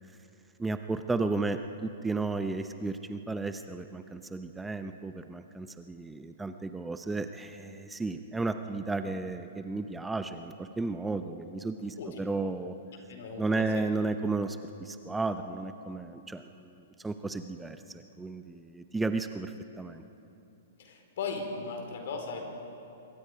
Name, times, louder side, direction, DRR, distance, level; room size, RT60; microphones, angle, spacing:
voice 1, 0.6-12.8 13.4-16.7 17.0-20.0, right 3 dB, 10° right, 8 dB, 0.8 m, -33 dB
voice 2, 13.1-13.8 20.8-22.4, left 4 dB, 60° left, 4 dB, 4.4 m, -37 dB
25.5 x 23.0 x 5.0 m, 2.8 s
hypercardioid pair, 115°, 0 cm